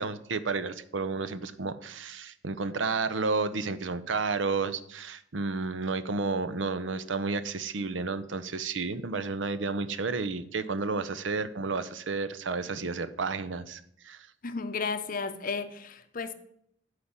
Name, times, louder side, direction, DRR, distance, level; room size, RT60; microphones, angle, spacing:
voice 1, 0.0-14.3, right 4 dB, 85° right, 0.7 m, -31 dB
voice 2, 14.4-16.3, left 4 dB, 50° left, 0.7 m, -33 dB
8.1 x 5.0 x 7.3 m
head